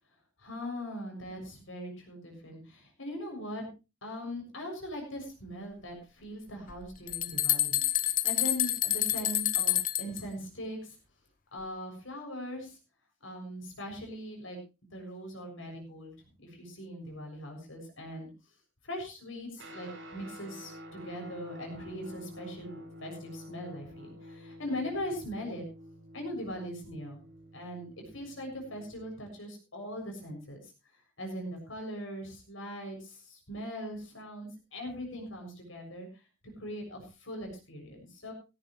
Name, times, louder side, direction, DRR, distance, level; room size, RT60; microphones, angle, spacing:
voice 1, 0.4-3.7 4.0-11.0 11.5-12.8 13.2-14.6 14.9-16.1 16.4-18.3 18.8-25.6 26.1-27.2 27.5-30.7 31.2-36.1 36.6-38.3, equal, 75° left, 2 dB, 7.0 m, -40 dB
sound 1, 6.7-10.2, left 13 dB, 40° left, 0.9 m, -28 dB
Guitar, 19.6-29.2, equal, 65° right, 5.1 m, -49 dB
17.0 x 14.0 x 3.2 m, 0.30 s
head